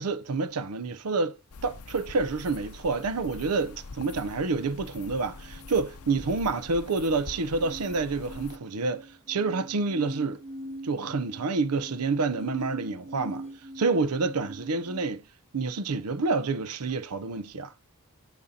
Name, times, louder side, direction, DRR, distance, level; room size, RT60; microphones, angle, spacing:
voice 1, 0.0-1.3 1.6-10.4 10.8-13.5 13.8-15.2 15.5-17.7, right 3 dB, 90° right, 0.6 m, -28 dB
sound 1, 1.5-8.6, left 3 dB, 75° left, 0.6 m, -44 dB
sound 2, 5.4-15.0, equal, 30° left, 1.9 m, -43 dB
8.7 x 5.5 x 2.8 m
head